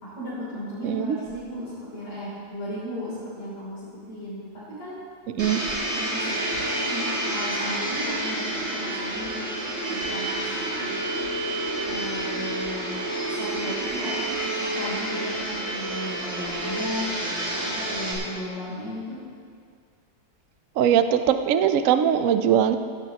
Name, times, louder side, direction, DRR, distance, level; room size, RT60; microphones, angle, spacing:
voice 1, 0.0-5.0 5.4-5.6 5.9-9.4 9.9-11.0 11.8-19.2, equal, 55° left, -10 dB, 3.9 m, -36 dB
Domestic sounds home sounds, 5.4-18.1, right 1 dB, 70° right, 4.4 m, -29 dB
voice 2, 20.8-22.8, right 9 dB, 85° right, 9 dB, 0.7 m, -20 dB
15.5 x 15.5 x 2.9 m, 2.1 s
omnidirectional pair, 2.2 m